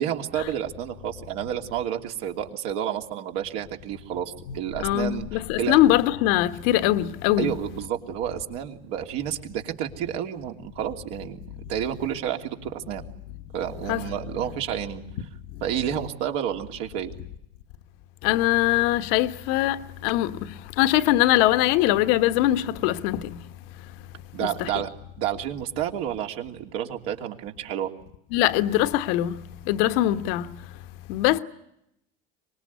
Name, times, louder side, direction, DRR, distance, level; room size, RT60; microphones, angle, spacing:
voice 1, 0.0-5.8 7.4-11.4 11.7-13.1 13.5-15.0 15.6-17.1 24.3-24.9 25.2-27.9, right 10 dB, 70° right, 3.1 m, -30 dB
voice 2, 4.5-7.5 11.5-11.6 13.9-14.1 18.2-23.5 23.8-24.0 24.4-24.7 28.3-30.7 31.1-31.4, left 14 dB, 70° left, 1.3 m, -22 dB
24.5 x 20.5 x 9.5 m
supercardioid pair, 95°, 30 cm